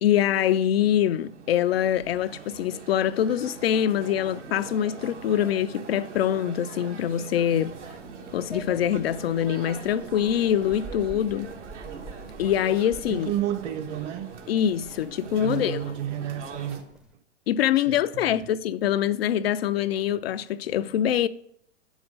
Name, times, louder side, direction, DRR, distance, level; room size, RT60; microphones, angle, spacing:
voice 1, 0.0-7.8 8.3-11.5 12.4-13.3 14.5-15.9 17.5-21.3, left 10 dB, 55° left, 0.4 m, -24 dB
sound 1, 0.7-16.8, right 5 dB, 70° right, 1.6 m, -42 dB
sound 2, 7.5-17.1, right 2 dB, ahead, 0.6 m, -47 dB
voice 2, 13.1-14.3 15.4-16.8 17.9-18.3, right 11 dB, 35° right, 1.0 m, -31 dB
8.4 x 6.3 x 5.1 m
figure-of-eight pair, 100°, 37 cm